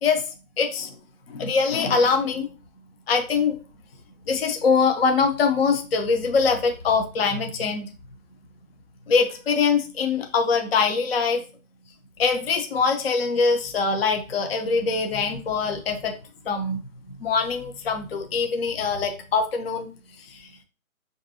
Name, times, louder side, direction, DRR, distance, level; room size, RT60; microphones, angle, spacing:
voice 1, 0.6-0.9 1.3-2.5 3.1-3.6 4.3-7.9 9.1-11.4 12.2-16.1 16.5-16.8 17.2-19.9 20.3-20.4, left 5 dB, 45° left, 5 dB, 0.5 m, -23 dB
4.5 x 2.6 x 2.7 m, 0.35 s
hypercardioid pair, 155°, 42 cm